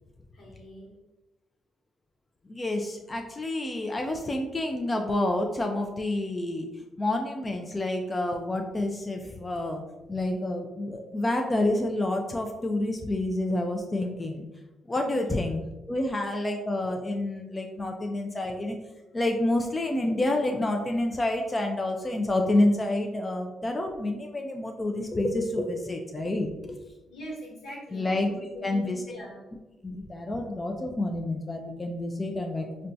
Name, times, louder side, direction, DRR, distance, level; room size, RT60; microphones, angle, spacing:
voice 1, 0.3-0.9 15.0-15.2 27.1-29.5, equal, 80° left, -3 dB, 1.2 m, -42 dB
voice 2, 2.5-6.7 7.0-9.8 10.1-14.5 14.9-15.6 15.9-18.8 19.1-26.8 27.9-29.0 29.8-32.9, left 1 dB, 25° left, 3 dB, 0.3 m, -28 dB
4.1 x 2.2 x 2.6 m, 1.0 s
cardioid pair, 85°, 0 cm